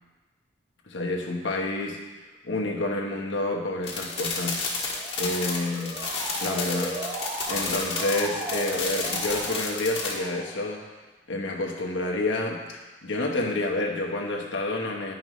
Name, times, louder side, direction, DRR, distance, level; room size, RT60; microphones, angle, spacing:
voice 1, 0.9-2.0 2.4-4.6 5.2-6.0 6.4-7.0 7.5-10.8 11.3-15.1, left 2 dB, 75° left, 0 dB, 1.1 m, -29 dB
sound 1, 3.8-10.1, left 4 dB, 30° left, 1.6 m, -31 dB
Motor vehicle (road) / Siren, 4.8-10.7, right 2 dB, 25° right, 0.9 m, -37 dB
10.5 x 5.4 x 3.1 m, 1.2 s
head